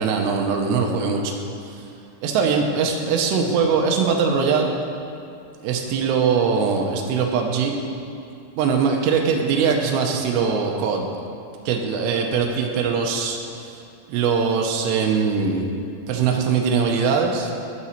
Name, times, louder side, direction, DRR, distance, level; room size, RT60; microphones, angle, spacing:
voice 1, 0.0-1.3 1.6-1.9 2.2-4.8 5.6-7.8 8.6-11.1 11.7-13.7 14.1-15.7 16.1-17.5, right 5 dB, 80° right, 2 dB, 2.7 m, -21 dB
12.0 x 6.1 x 4.3 m, 2.5 s
omnidirectional pair, 5.4 m